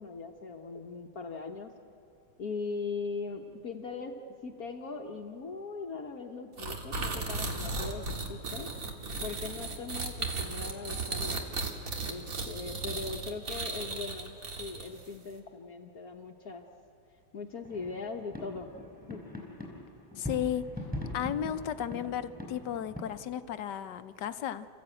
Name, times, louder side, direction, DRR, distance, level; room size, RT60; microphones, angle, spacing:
voice 1, 0.0-1.7 2.4-8.7 9.2-11.5 12.1-16.6 17.3-18.7 19.1-19.3, left 4 dB, 60° left, 3 dB, 1.5 m, -40 dB
sound 1, 6.6-15.1, right 3 dB, 50° right, 2.3 m, -35 dB
sound 2, 17.6-23.0, left 1 dB, 5° right, 4.2 m, -42 dB
voice 2, 20.2-20.7 21.1-24.7, left 9 dB, 80° left, 11 dB, 1.4 m, -34 dB
29.5 x 14.5 x 8.9 m, 2.7 s
omnidirectional pair, 1.9 m